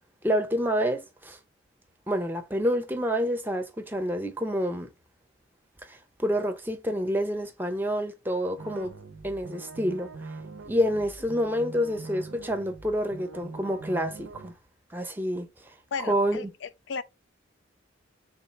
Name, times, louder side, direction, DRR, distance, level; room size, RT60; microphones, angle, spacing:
voice 1, 0.2-1.4 2.1-4.9 5.9-8.9 9.2-10.1 10.7-14.5 14.9-15.5 16.0-16.5, equal, 10° right, 0.6 m, -28 dB
sound 1, 8.6-14.5, right 3 dB, 90° right, 0.6 m, -43 dB
voice 2, 15.9-17.0, left 5 dB, 70° left, 0.4 m, -35 dB
3.7 x 2.4 x 4.3 m
head